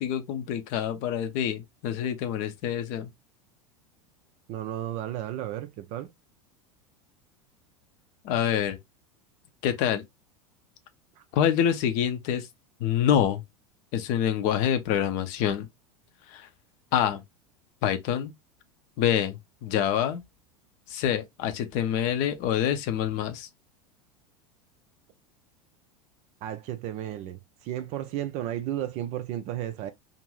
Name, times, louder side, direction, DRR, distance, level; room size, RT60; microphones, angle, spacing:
voice 1, 0.0-3.1 8.2-8.8 9.6-10.0 11.3-12.5 12.8-13.4 13.9-15.7 16.3-16.5 16.9-17.2 17.8-18.3 19.0-20.2 20.9-23.5, left 9 dB, 45° left, 0.6 m, -26 dB
voice 2, 4.5-6.1 11.2-11.3 26.4-29.9, right 12 dB, 35° right, 0.4 m, -33 dB
2.6 x 2.5 x 3.1 m
figure-of-eight pair, 85°, 19 cm